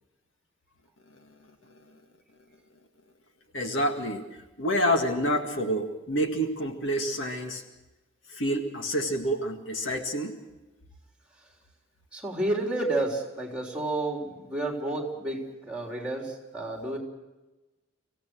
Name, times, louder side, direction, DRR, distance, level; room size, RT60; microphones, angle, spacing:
voice 1, 3.5-4.2 4.6-7.6 8.3-10.3, equal, 60° left, 4 dB, 2.0 m, -28 dB
voice 2, 12.1-17.0, right 2 dB, 5° right, 0 dB, 3.7 m, -30 dB
25.5 x 16.5 x 6.3 m, 1.1 s
head